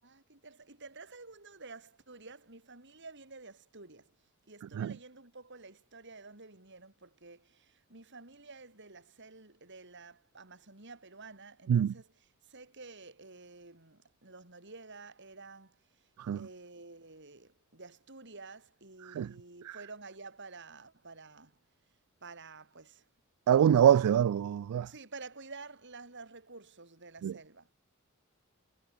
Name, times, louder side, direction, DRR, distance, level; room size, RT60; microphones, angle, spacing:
voice 1, 0.0-4.2 4.5-16.1 16.4-21.6 22.2-23.1 24.8-27.7, right 3 dB, 55° right, 5.5 m, -51 dB
voice 2, 23.5-24.9 27.2-27.3, right 9 dB, 85° right, 0.3 m, -25 dB
head